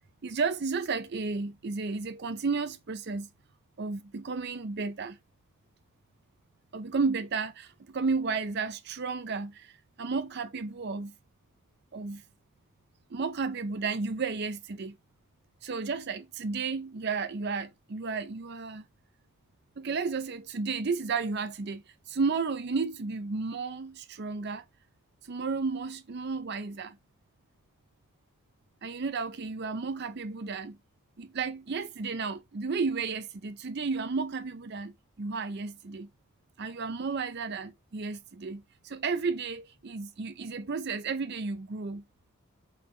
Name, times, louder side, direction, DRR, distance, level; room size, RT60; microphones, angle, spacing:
voice 1, 0.2-3.3 3.8-5.2 6.7-9.7 10.0-11.1 11.9-12.2 13.1-15.0 15.6-18.8 19.8-24.6 25.3-27.0 28.8-30.8 31.2-36.1 36.6-42.0, right 4 dB, 45° right, 0.5 m, -33 dB
4.2 x 3.8 x 3.1 m
head